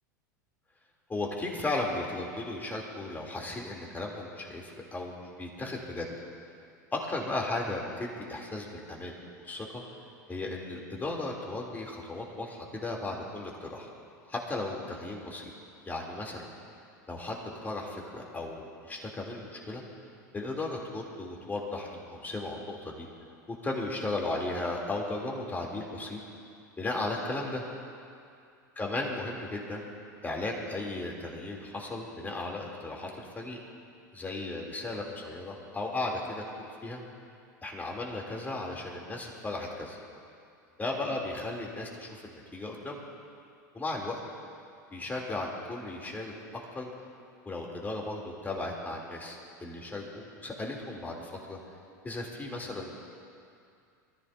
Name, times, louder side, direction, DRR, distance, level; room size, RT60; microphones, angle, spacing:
voice 1, 1.1-6.1 6.9-9.2 9.4-9.8 10.3-13.9 14.3-15.5 15.8-16.5 17.1-19.8 20.3-23.1 23.5-26.2 26.8-27.6 28.8-29.8 30.2-33.6 34.1-37.0 37.6-40.0 40.8-43.0 43.7-44.2 44.9-46.3 46.7-46.9 47.4-51.6 52.0-53.0, left 2 dB, 20° left, -1 dB, 3.2 m, -35 dB
23.5 x 14.5 x 2.8 m, 2.4 s
hypercardioid pair, 90°, 10 cm